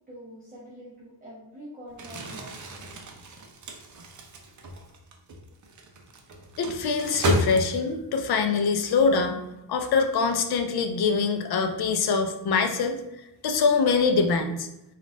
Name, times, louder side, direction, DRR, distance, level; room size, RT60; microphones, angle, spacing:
voice 1, 0.1-3.0, equal, 20° right, -8 dB, 0.8 m, -45 dB
Crumpling crinkling, 1.9-8.1, right 1 dB, 45° right, 0.5 m, -33 dB
voice 2, 6.6-9.4 9.7-13.0 13.4-14.7, left 4 dB, 60° left, 6 dB, 0.5 m, -24 dB
3.9 x 2.5 x 3.6 m, 0.89 s
wide cardioid pair, 170°, 44 cm